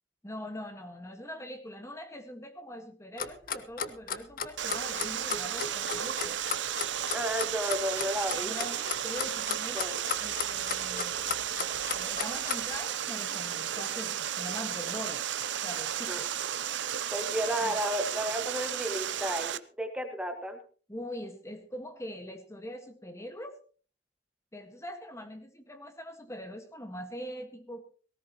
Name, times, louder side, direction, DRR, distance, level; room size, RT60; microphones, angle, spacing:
voice 1, 0.2-6.4 8.4-9.8 10.2-11.4 11.9-15.2 15.6-16.3 17.6-17.8 20.9-23.6 24.5-27.8, equal, 15° left, 6 dB, 1.6 m, -42 dB
Clock, 3.2-12.8, left 6 dB, 50° left, 1.2 m, -34 dB
Water, 4.6-19.6, right 10 dB, 80° right, 0.7 m, -34 dB
voice 2, 7.1-8.5 9.7-9.9 16.1-16.2 17.1-20.6, right 1 dB, 5° right, 4 dB, 1.6 m, -32 dB
18.5 x 16.5 x 3.0 m, 0.39 s
head